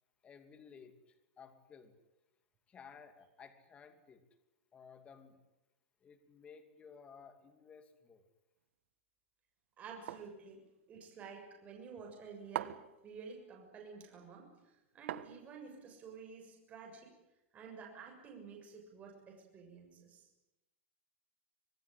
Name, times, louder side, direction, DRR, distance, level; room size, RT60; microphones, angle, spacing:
voice 1, 0.2-1.9 2.7-4.2 4.7-5.4 6.0-8.3, left 6 dB, 15° left, 7 dB, 2.7 m, -56 dB
voice 2, 9.8-10.6 10.9-12.8 13.0-17.1 17.5-20.2, right 5 dB, 20° right, 1 dB, 6.8 m, -51 dB
sound 1, 10.1-10.4 12.5-13.0 15.1-15.7, right 12 dB, 75° right, 1.4 m, -41 dB
26.0 x 18.5 x 10.0 m, 0.94 s
supercardioid pair, 160°, 7 cm